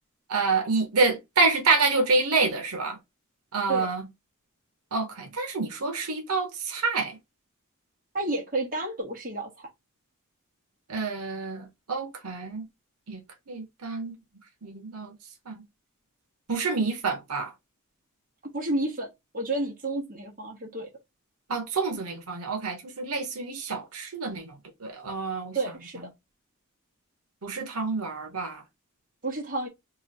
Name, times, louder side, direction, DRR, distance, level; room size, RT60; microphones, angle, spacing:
voice 1, 0.3-3.0 3.5-4.0 4.9-7.1 10.9-12.6 13.1-13.2 13.5-14.1 14.6-15.1 15.5-15.6 16.5-17.5 21.5-24.5 24.8-25.6 27.4-28.6, right 4 dB, 85° right, 0.9 m, -27 dB
voice 2, 8.1-9.7 18.5-19.1 19.3-20.9 25.5-26.1 29.2-29.7, right 2 dB, 40° right, 1.2 m, -30 dB
3.0 x 2.4 x 4.0 m
head